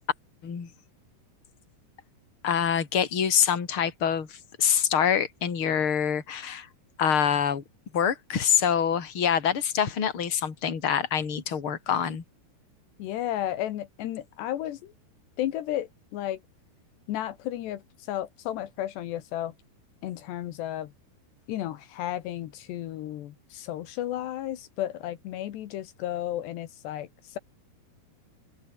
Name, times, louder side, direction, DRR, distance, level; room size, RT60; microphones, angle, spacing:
voice 1, 2.4-6.7 7.0-7.6 7.9-12.2, left 8 dB, 35° left, 3.4 m, -25 dB
voice 2, 13.0-14.9 15.4-16.4 17.1-19.5 20.0-20.9 21.5-27.4, left 12 dB, 80° left, 3.5 m, -33 dB
omnidirectional pair, 5.0 m